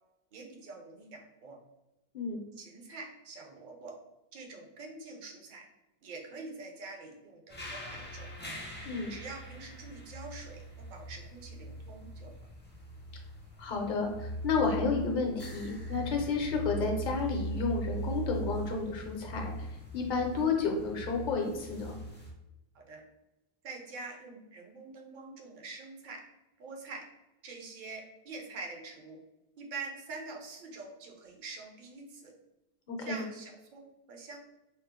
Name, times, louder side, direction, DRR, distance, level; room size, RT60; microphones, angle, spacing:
voice 1, 0.3-1.6 2.5-3.9 4.3-5.7 6.0-8.3 9.1-12.3 22.7-23.0 23.6-26.2 26.6-27.0 27.4-29.2 29.6-32.3 33.0-34.4, right 3 dB, 55° right, 0 dB, 0.7 m, -45 dB
sound 1, 7.5-22.3, right 1 dB, 15° left, 0.4 m, -41 dB
voice 2, 13.6-19.7 19.9-22.0 32.9-33.2, left 4 dB, 55° left, 2 dB, 0.7 m, -31 dB
2.8 x 2.0 x 3.5 m, 0.98 s
omnidirectional pair, 1.1 m